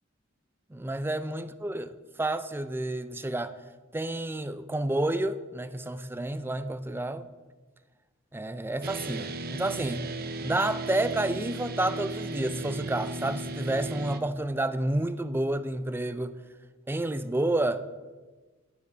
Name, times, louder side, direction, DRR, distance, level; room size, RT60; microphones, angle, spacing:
voice 1, 0.7-3.5 3.9-7.3 8.3-10.0 10.4-16.3 16.9-17.8, right 1 dB, 10° right, 0.4 m, -30 dB
sound 1, 8.8-14.2, right 2 dB, 50° right, 0.7 m, -36 dB
11.5 x 6.9 x 4.8 m
head